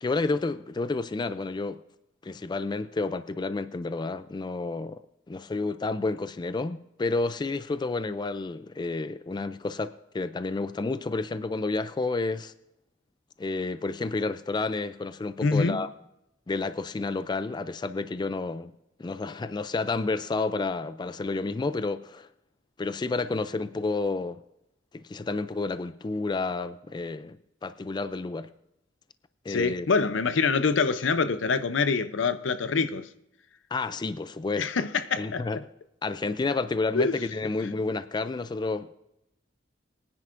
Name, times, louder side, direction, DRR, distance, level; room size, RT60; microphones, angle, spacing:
voice 1, 0.0-1.8 2.2-5.0 5.3-12.5 13.4-15.9 16.5-18.7 19.0-22.3 22.8-24.4 24.9-27.4 27.6-28.5 29.4-29.9 33.7-34.9 35.2-35.6 36.0-38.9, left 3 dB, 25° left, 0.3 m, -30 dB
voice 2, 15.4-15.8 29.5-33.1 34.6-35.6 36.9-37.2, left 4 dB, 80° left, 0.6 m, -25 dB
22.5 x 9.8 x 2.5 m
head